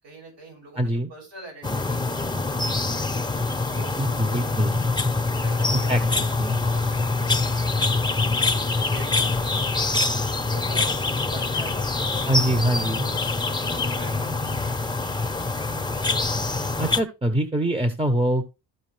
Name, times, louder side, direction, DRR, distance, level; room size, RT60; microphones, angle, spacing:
voice 1, 0.0-2.4 3.6-4.6 5.4-6.3 6.7-7.5 8.1-9.6 10.4-13.6 13.9-15.1, right 2 dB, 75° right, -1 dB, 6.2 m, -45 dB
voice 2, 0.8-1.1 4.0-4.8 5.9-6.0 6.4-6.6 12.3-13.0 16.8-18.4, right 1 dB, 15° right, 8 dB, 1.0 m, -24 dB
sound 1, 1.6-17.0, left 3 dB, 10° left, 0.9 m, -25 dB
13.5 x 5.0 x 3.4 m, 0.28 s
cardioid pair, 90°, 43 cm